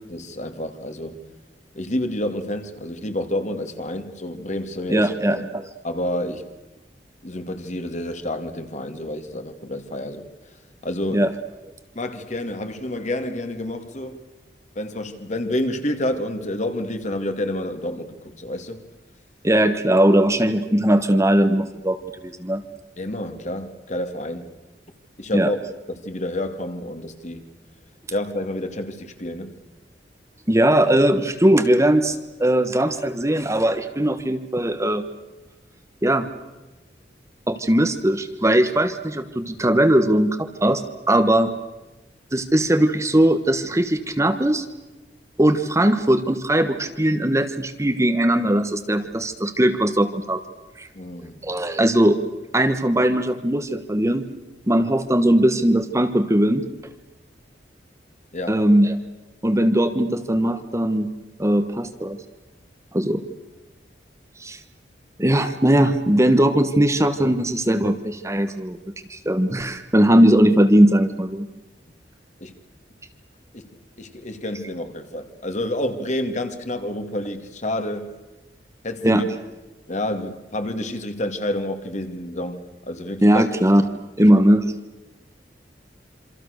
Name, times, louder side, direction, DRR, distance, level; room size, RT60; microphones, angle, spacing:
voice 1, 0.1-1.2 1.7-5.5 5.8-6.5 7.2-10.2 10.8-11.3 11.9-14.2 14.8-18.8 23.0-24.5 25.2-25.6 25.9-27.4 28.1-29.6 50.9-51.4 58.3-58.6 72.4-72.5 73.5-73.7 74.0-78.1 78.8-79.3 79.9-82.6 82.9-83.4, left 1 dB, 45° left, 7 dB, 2.4 m, -29 dB
voice 2, 4.9-5.6 11.1-11.3 19.4-22.6 25.3-25.5 30.5-35.0 36.0-36.3 37.5-41.5 42.3-44.6 45.4-50.4 50.8-50.9 51.4-52.2 52.5-54.2 54.7-56.6 58.5-58.9 59.4-61.1 61.4-62.2 62.9-63.2 64.4-64.6 65.2-71.5 79.0-79.2 83.2-83.8 84.2-84.6, right 1 dB, 15° right, 8 dB, 1.3 m, -19 dB
27.5 x 26.0 x 6.6 m, 1.1 s
head